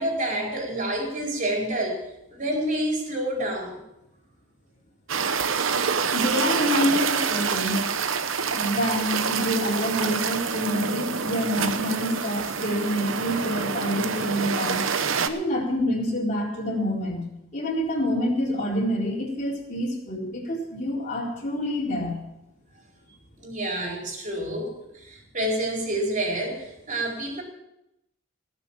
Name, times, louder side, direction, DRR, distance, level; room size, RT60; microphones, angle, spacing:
voice 1, 0.0-2.0 2.3-3.8 23.4-27.4, right 1 dB, 40° right, 0 dB, 4.4 m, -28 dB
sound 1, 5.1-15.3, right 6 dB, 75° right, 0.9 m, -27 dB
voice 2, 6.1-7.8 8.5-14.9 15.3-17.3 17.5-22.2, equal, 40° left, -4 dB, 4.2 m, -27 dB
18.5 x 7.0 x 7.3 m, 0.87 s
head